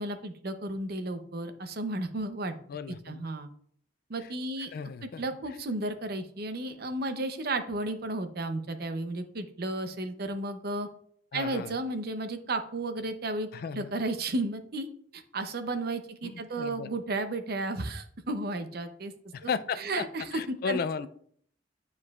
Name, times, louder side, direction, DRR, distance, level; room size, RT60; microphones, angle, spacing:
voice 1, 0.0-2.6 3.1-3.5 4.1-4.7 5.2-10.9 11.3-14.9 15.1-19.1 19.4-19.5 19.8-21.1, right 2 dB, 60° right, 8 dB, 0.7 m, -33 dB
voice 2, 2.7-3.2 4.2-4.3 4.7-5.2 11.3-11.7 13.5-13.9 16.2-16.9 19.3-20.0 20.3-21.1, left 6 dB, 55° left, 14 dB, 0.3 m, -34 dB
9.7 x 4.8 x 2.4 m, 0.62 s
head